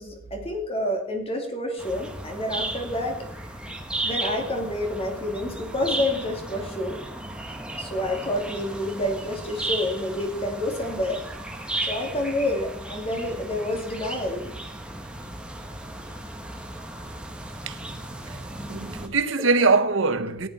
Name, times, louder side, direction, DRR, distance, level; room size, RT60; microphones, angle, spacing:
voice 1, 0.0-3.2 4.0-7.0 7.8-11.2 11.9-14.5, left 1 dB, 30° left, 2.6 m, -28 dB
sound 1, 1.8-19.1, right 2 dB, 5° right, 1.4 m, -35 dB
voice 2, 18.7-20.5, right 4 dB, 65° right, 1.1 m, -22 dB
14.5 x 10.5 x 4.2 m
head